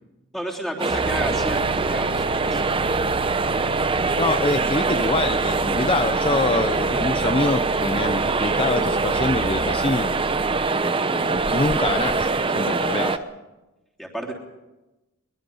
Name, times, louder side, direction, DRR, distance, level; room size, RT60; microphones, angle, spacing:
voice 1, 0.3-2.7 13.0-13.1 14.0-14.3, equal, ahead, -1 dB, 3.4 m, -31 dB
sound 1, 0.8-13.2, right 3 dB, 25° right, 0.7 m, -23 dB
sound 2, 0.9-9.8, left 1 dB, 75° left, 2.2 m, -40 dB
Bus, 1.0-10.7, right 3 dB, 85° right, 1.0 m, -36 dB
voice 2, 3.9-10.2 10.5-13.1, left 2 dB, 25° left, 9 dB, 0.6 m, -25 dB
22.5 x 21.5 x 5.5 m, 1.0 s
head